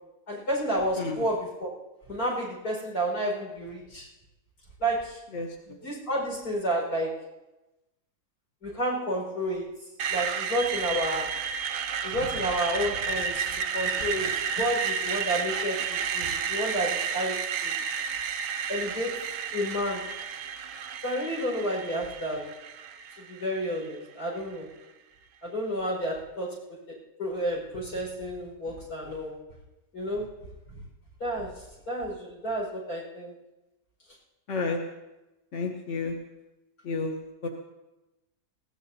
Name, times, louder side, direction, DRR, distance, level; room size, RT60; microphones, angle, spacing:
voice 1, 0.3-1.7 2.1-4.1 4.8-5.2 5.7-7.2 8.6-9.7 10.1-11.4 12.0-17.4 17.6-17.7 18.7-19.2 19.5-20.1 21.0-22.5 23.3-24.7 25.4-29.4 29.9-30.3 31.2-33.3, equal, 60° left, -4 dB, 6.0 m, -31 dB
voice 2, 5.3-5.8 34.5-34.8 35.5-36.1 36.8-37.1 37.4-37.5, left 4 dB, 45° left, 1 dB, 1.4 m, -31 dB
Screech, 10.0-23.9, right 6 dB, 65° right, 1.0 m, -32 dB
21.0 x 17.5 x 2.8 m, 1.0 s
omnidirectional pair, 1.9 m